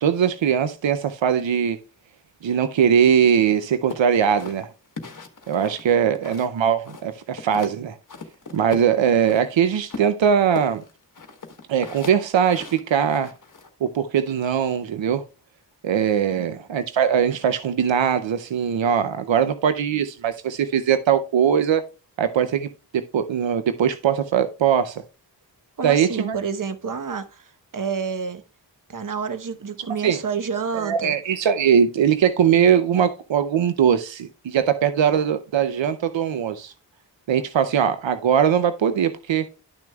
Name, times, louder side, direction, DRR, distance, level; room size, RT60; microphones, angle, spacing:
voice 1, 0.0-1.8 2.4-4.7 5.5-8.0 8.5-10.8 11.7-13.3 13.8-15.2 15.8-21.8 22.2-25.0 25.8-26.4 30.0-30.2 30.7-36.7 37.3-39.5, right 8 dB, 90° right, 0.7 m, -21 dB
sound 1, 3.9-6.6 6.9-7.8 8.1-9.5 9.9-13.7, left 4 dB, 45° left, 1.2 m, -38 dB
voice 2, 25.8-28.4 28.9-31.1, right 6 dB, 45° right, 1.0 m, -29 dB
12.0 x 6.1 x 2.3 m
wide cardioid pair, 65°, 44 cm